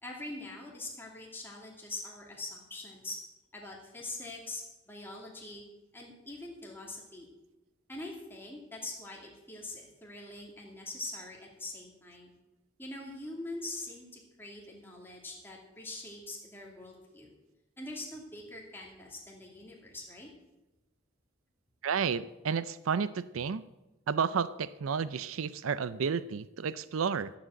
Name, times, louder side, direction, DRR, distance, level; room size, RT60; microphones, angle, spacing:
voice 1, 0.0-3.2 3.5-5.6 5.9-7.3 7.9-12.3 12.8-17.3 17.8-20.3, left 2 dB, 10° left, -2 dB, 2.6 m, -43 dB
voice 2, 21.8-23.6 24.1-27.3, right 6 dB, 90° right, 16 dB, 0.5 m, -31 dB
14.0 x 7.7 x 7.7 m, 1.0 s
head